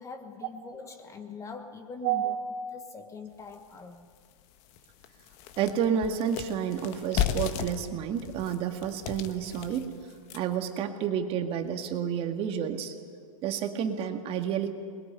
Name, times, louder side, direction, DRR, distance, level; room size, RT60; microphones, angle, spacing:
voice 1, 0.0-2.4 2.7-4.1, left 4 dB, 15° left, 7 dB, 1.3 m, -43 dB
voice 2, 2.0-2.4 5.6-9.9 10.3-12.9 13.4-14.7, right 8 dB, 30° right, 5 dB, 2.0 m, -30 dB
sound 1, 3.5-3.6 4.1-4.2 4.6-10.6, left 9 dB, 40° left, 1.4 m, -35 dB
23.0 x 21.0 x 9.9 m, 2.1 s
hypercardioid pair, 135°, 18 cm